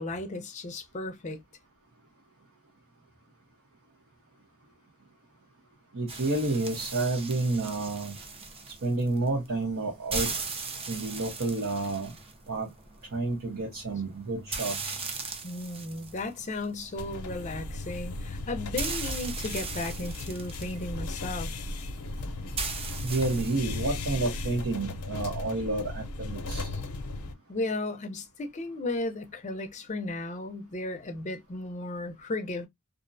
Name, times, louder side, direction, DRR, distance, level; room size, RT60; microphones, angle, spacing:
voice 1, 0.0-1.4 15.4-21.5 26.7-26.8 27.5-32.7, left 2 dB, 35° left, 0.5 m, -35 dB
voice 2, 5.9-8.2 8.8-10.3 10.9-12.1 12.5-12.7 13.1-15.0 23.0-26.7, right 2 dB, 75° right, 0.8 m, -30 dB
sound 1, 6.1-24.0, right 4 dB, 25° right, 0.5 m, -39 dB
sound 2, 17.0-27.3, left 2 dB, 80° left, 0.5 m, -36 dB
2.5 x 2.1 x 2.5 m
head